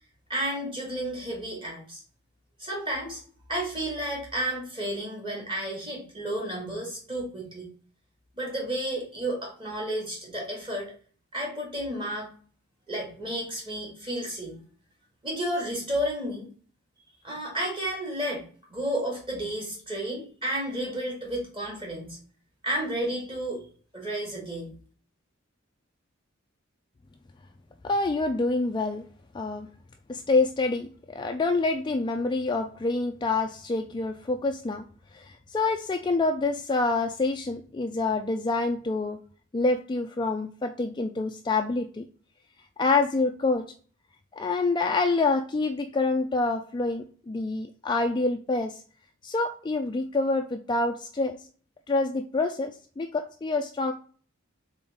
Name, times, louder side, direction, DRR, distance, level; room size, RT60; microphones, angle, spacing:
voice 1, 0.3-2.0 2.6-3.2 3.5-7.7 8.4-10.9 11.3-12.3 12.9-14.6 15.2-16.5 17.2-18.4 18.7-22.2 22.6-23.6 23.9-24.7, right 1 dB, 25° right, -1 dB, 1.9 m, -32 dB
voice 2, 27.8-29.0 29.3-29.7 30.1-34.8 35.1-39.2 39.5-42.0 42.8-43.7 44.4-48.8 49.2-51.4 51.9-53.9, left 3 dB, 20° left, 5 dB, 0.3 m, -27 dB
4.0 x 3.8 x 3.5 m, 0.43 s
head